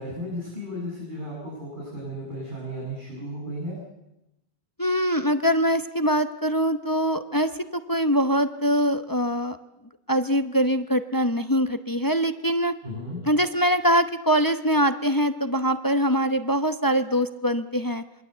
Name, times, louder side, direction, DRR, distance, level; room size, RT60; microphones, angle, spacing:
voice 1, 0.0-3.8 12.8-13.2, equal, 50° right, -4 dB, 8.1 m, -34 dB
voice 2, 4.8-9.6 10.1-12.7 13.2-18.0, equal, 20° left, 8 dB, 0.9 m, -23 dB
27.0 x 22.5 x 8.1 m, 0.91 s
omnidirectional pair, 1.1 m